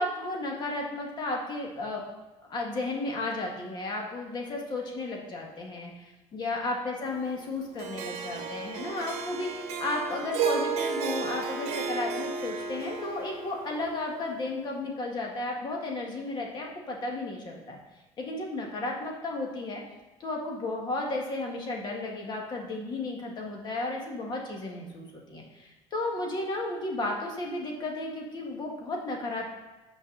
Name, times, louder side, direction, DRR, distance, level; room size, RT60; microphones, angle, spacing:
voice 1, 0.0-2.0 2.5-5.9 6.3-17.8 18.2-19.8 20.2-29.5, left 2 dB, 40° left, 0 dB, 1.8 m, -33 dB
Harp, 7.8-14.2, right 5 dB, 65° right, 1.2 m, -33 dB
6.2 x 5.2 x 6.5 m, 1.1 s
cardioid pair, 140°, 12 cm